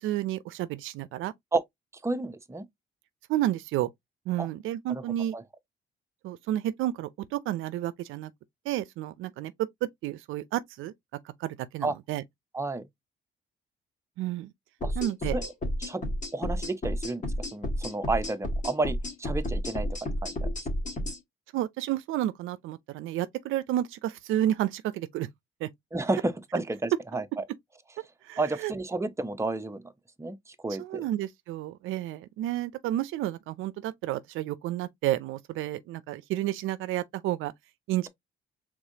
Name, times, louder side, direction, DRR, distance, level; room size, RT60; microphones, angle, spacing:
voice 1, 0.0-1.3 3.3-3.9 4.3-5.3 6.2-8.3 8.7-9.5 10.0-10.9 11.4-12.2 14.2-14.5 15.0-15.4 21.5-25.3 25.6-25.7 28.2-28.7 30.8-37.5 37.9-38.1, right 13 dB, 85° right, 0.5 m, -31 dB
voice 2, 2.0-2.7 4.4-4.5 4.9-5.0 5.3-5.4 11.8-11.9 12.5-12.9 14.8-15.0 15.3-15.4 15.8-16.0 16.3-19.9 20.2-20.5 25.9-27.4 28.4-29.9 30.2-31.0, right 2 dB, 15° right, 0.8 m, -31 dB
sound 1, 14.8-21.2, left 1 dB, 40° left, 1.9 m, -31 dB
4.8 x 3.6 x 2.7 m
cardioid pair, 90°, 20 cm